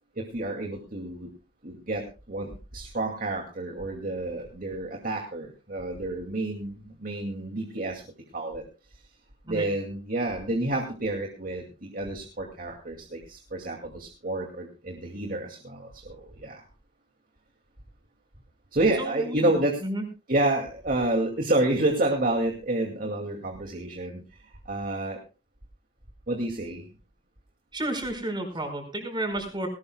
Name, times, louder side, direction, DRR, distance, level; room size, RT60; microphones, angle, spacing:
voice 1, 0.2-1.3 1.6-8.0 8.3-8.6 9.5-16.2 16.4-16.6 18.7-19.8 20.3-24.2 24.7-25.2 26.3-26.8, right 2 dB, 50° right, 2 dB, 2.3 m, -29 dB
voice 2, 19.0-19.4 19.8-20.0 27.7-29.7, right 1 dB, 25° right, 5 dB, 4.9 m, -31 dB
19.5 x 18.5 x 2.2 m, 0.32 s
head